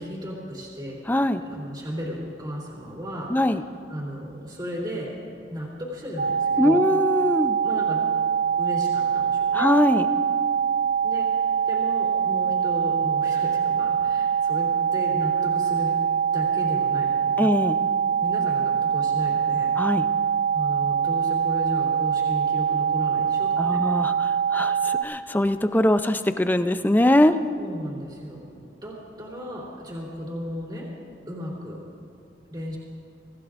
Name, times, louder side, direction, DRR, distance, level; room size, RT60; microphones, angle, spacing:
voice 1, 0.0-1.0 1.4-3.6 3.9-5.2 5.5-6.8 7.6-8.1 8.6-9.7 11.0-16.0 16.3-17.5 18.2-19.7 20.5-23.8 27.6-28.5 28.8-30.9 31.3-31.8 32.5-32.8, equal, 25° right, -5 dB, 3.2 m, -35 dB
voice 2, 1.1-1.4 3.3-3.6 6.6-7.6 9.5-10.1 17.4-17.8 19.8-20.1 23.6-27.3, left 1 dB, 10° left, 9 dB, 0.5 m, -22 dB
sound 1, 6.2-25.0, right 7 dB, 80° right, 1.0 m, -24 dB
24.5 x 15.5 x 2.5 m, 2.6 s
head